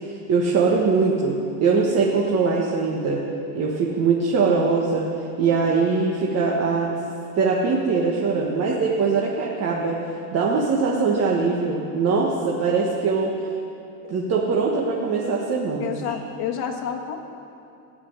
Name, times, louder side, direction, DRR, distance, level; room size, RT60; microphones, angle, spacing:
voice 1, 0.0-3.2 3.5-5.1 5.4-6.9 7.3-13.5 14.1-16.1, right 4 dB, 35° right, -3 dB, 1.4 m, -22 dB
voice 2, 15.8-17.2, left 8 dB, 55° left, 4 dB, 1.6 m, -29 dB
15.5 x 7.9 x 9.9 m, 2.6 s
cardioid pair, 165°, 45 cm